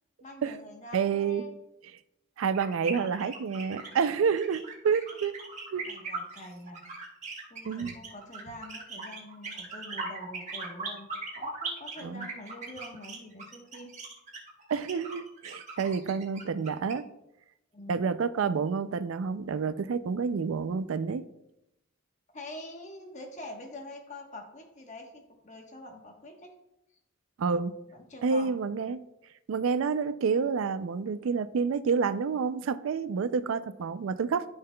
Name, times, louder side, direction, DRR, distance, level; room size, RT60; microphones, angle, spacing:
voice 1, 0.2-1.6 5.8-6.8 7.5-11.1 11.3-13.9 17.7-18.2 22.3-26.5 27.9-28.5, left 1 dB, 35° left, 1.1 m, -45 dB
voice 2, 0.9-1.4 2.4-5.3 5.7-5.9 7.7-7.9 12.0-12.3 14.7-17.1 17.9-21.3 27.4-27.8 28.2-29.0 29.5-34.4, right 5 dB, 85° right, 0.4 m, -29 dB
sound 1, 2.5-16.9, right 4 dB, 35° right, 1.4 m, -39 dB
13.0 x 5.6 x 2.2 m
head